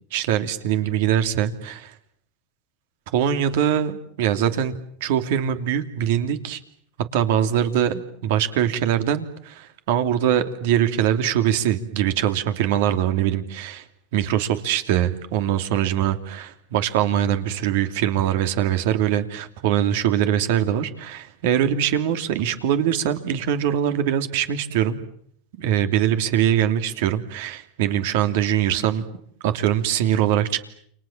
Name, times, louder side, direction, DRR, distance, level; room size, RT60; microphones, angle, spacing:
voice 1, 0.1-1.9 3.1-6.6 7.1-13.8 14.1-25.0 25.6-29.0 29.4-30.6, right 10 dB, 70° right, 8 dB, 2.9 m, -22 dB
29.0 x 25.5 x 7.4 m, 0.68 s
hypercardioid pair, 105°, 0 cm